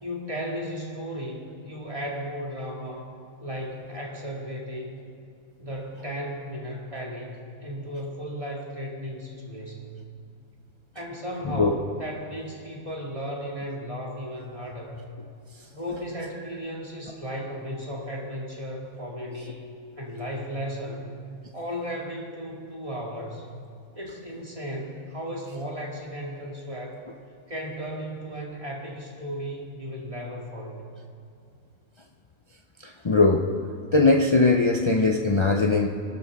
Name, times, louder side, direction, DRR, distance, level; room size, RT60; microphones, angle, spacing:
voice 1, 0.0-3.1 3.4-5.0 5.6-10.0 10.9-15.0 15.7-19.6 20.0-21.1 21.5-23.5 24.0-27.0 27.5-30.9, equal, 25° right, -2 dB, 2.2 m, -35 dB
voice 2, 32.8-33.5 33.9-35.9, left 3 dB, 50° left, 1 dB, 0.3 m, -20 dB
25.0 x 12.5 x 3.5 m, 2.4 s
omnidirectional pair, 1.5 m